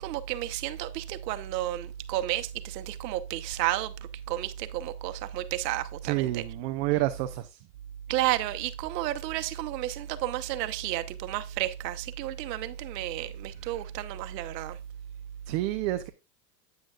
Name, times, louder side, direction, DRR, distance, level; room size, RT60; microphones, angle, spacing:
voice 1, 0.0-3.9 4.3-6.4 8.1-14.8, right 14 dB, 80° right, 1.0 m, -32 dB
voice 2, 6.0-7.6 15.5-16.1, right 16 dB, 40° right, 0.5 m, -29 dB
9.3 x 8.9 x 2.3 m
supercardioid pair, 165°, 48 cm